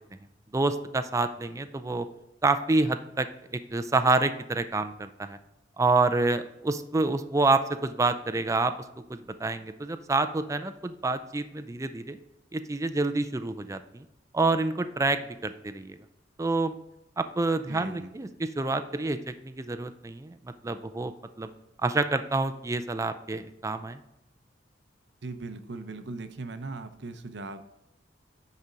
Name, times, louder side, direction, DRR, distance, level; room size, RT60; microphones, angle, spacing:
voice 1, 0.5-2.1 2.4-3.3 3.5-5.4 5.8-8.7 9.1-12.2 12.5-14.0 14.3-16.0 16.4-16.8 17.2-21.5 21.8-24.0, right 3 dB, 15° right, 10 dB, 0.4 m, -28 dB
voice 2, 17.7-18.1 25.2-27.6, right 3 dB, 65° right, 10 dB, 0.7 m, -39 dB
9.6 x 4.3 x 5.1 m, 0.85 s
head